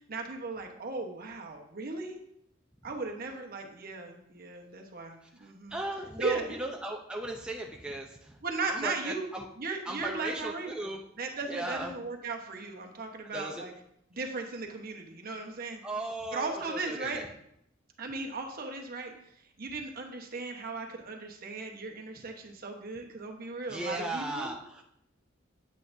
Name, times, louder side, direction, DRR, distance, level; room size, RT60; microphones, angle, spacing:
voice 1, 0.1-2.2 2.8-5.8 6.2-6.6 8.4-9.3 9.6-13.7 14.1-15.8 16.3-17.2 18.0-19.1 19.6-24.5, right 3 dB, 50° right, 2 dB, 1.0 m, -37 dB
voice 2, 5.2-9.4 9.9-11.0 11.5-12.0 13.3-13.7 15.8-17.3 23.7-24.8, right 1 dB, 5° right, 0 dB, 0.5 m, -37 dB
8.3 x 8.3 x 2.6 m, 0.75 s
head